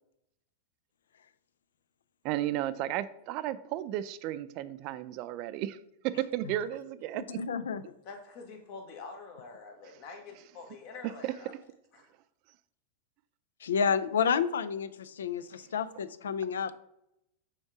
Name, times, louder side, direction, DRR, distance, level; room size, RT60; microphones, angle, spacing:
voice 1, 2.2-5.8 6.0-7.4 11.2-11.3, right 13 dB, 50° right, 0.4 m, -33 dB
voice 2, 7.1-7.8 13.6-16.7, left 6 dB, 85° left, 0.4 m, -30 dB
voice 3, 8.0-11.5 11.9-12.1, left 4 dB, 50° left, 1.5 m, -46 dB
5.3 x 3.6 x 4.8 m
hypercardioid pair, 120°, 0 cm